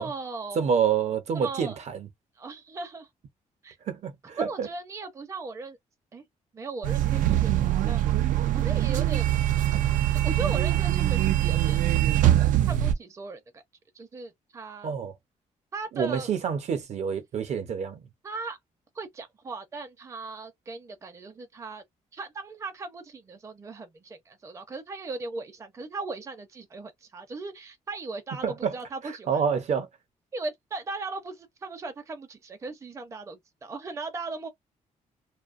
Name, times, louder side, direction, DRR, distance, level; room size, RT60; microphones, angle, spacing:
voice 1, 0.0-0.6 1.3-1.8 2.4-3.1 3.6-3.8 4.4-5.8 6.1-6.2 6.5-8.0 8.5-9.3 10.2-11.8 12.7-13.6 13.9-15.0 15.7-16.3 18.2-18.6 19.0-21.8 22.1-29.4 30.3-34.5, right 3 dB, 25° right, 0.5 m, -38 dB
voice 2, 0.6-2.1 3.9-4.7 14.8-15.1 15.9-18.1 28.4-28.7 29.3-29.9, right 7 dB, 60° right, 0.7 m, -27 dB
sound 1, 6.8-12.9, right 13 dB, 90° right, 0.4 m, -23 dB
2.6 x 2.2 x 2.4 m
cardioid pair, 140°, 13 cm